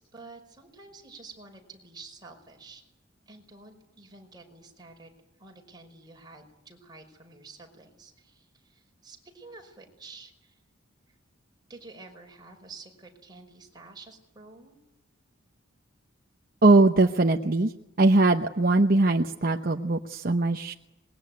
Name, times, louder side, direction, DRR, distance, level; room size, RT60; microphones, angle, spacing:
voice 1, 0.0-2.8 3.3-5.1 5.4-10.6 11.1-11.2 11.7-14.8, right 3 dB, 20° right, 2 dB, 5.4 m, -49 dB
voice 2, 16.6-17.7 18.0-20.7, right 2 dB, 50° right, 4 dB, 1.0 m, -21 dB
26.0 x 21.5 x 9.5 m, 0.91 s
head